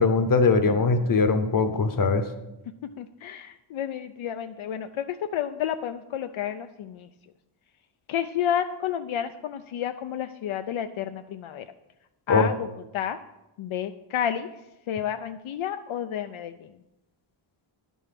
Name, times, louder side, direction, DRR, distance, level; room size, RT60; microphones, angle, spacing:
voice 1, 0.0-2.3 12.3-12.5, left 4 dB, 40° left, 7 dB, 0.9 m, -21 dB
voice 2, 3.0-7.1 8.1-11.7 12.3-12.7 12.9-13.2 13.6-14.5 14.9-16.8, left 9 dB, 75° left, 8 dB, 0.5 m, -31 dB
10.5 x 5.5 x 5.8 m, 0.92 s
wide cardioid pair, 170°, 49 cm